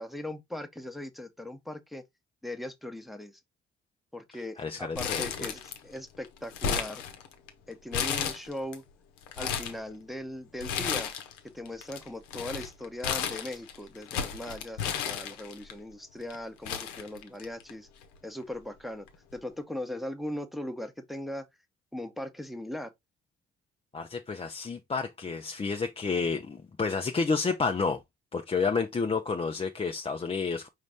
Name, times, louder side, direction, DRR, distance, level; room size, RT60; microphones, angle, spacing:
voice 1, 0.0-2.0 2.4-3.4 4.1-7.0 7.7-8.8 9.4-11.1 11.5-17.9 18.2-19.1 19.3-21.5 21.9-22.9, left 1 dB, ahead, 0.9 m, -39 dB
voice 2, 4.6-5.3 23.9-28.0 28.3-30.7, left 4 dB, 20° left, 0.5 m, -30 dB
Crumpling crinkling, 5.0-6.0 6.2-7.5 7.9-8.8 9.2-9.8 10.6-11.4 11.7-15.7 16.3-16.4 16.7-17.7 18.0-18.1 19.1-19.3, left 7 dB, 70° left, 0.8 m, -33 dB
5.0 x 2.6 x 3.4 m
hypercardioid pair, 45°, 31 cm